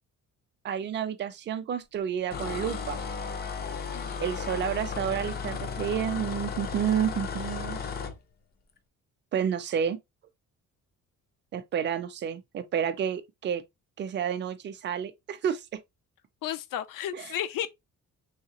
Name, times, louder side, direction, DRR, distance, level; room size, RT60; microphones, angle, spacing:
voice 1, 0.6-3.0 4.2-7.8 9.3-10.0 11.5-13.6 14.0-15.8 17.1-17.3, right 8 dB, 35° right, 0.4 m, -30 dB
sound 1, 2.3-8.2, left 5 dB, 30° left, 0.4 m, -34 dB
voice 2, 16.4-17.7, left 11 dB, 80° left, 0.5 m, -33 dB
3.2 x 2.8 x 2.8 m
cardioid pair, 160°, 33 cm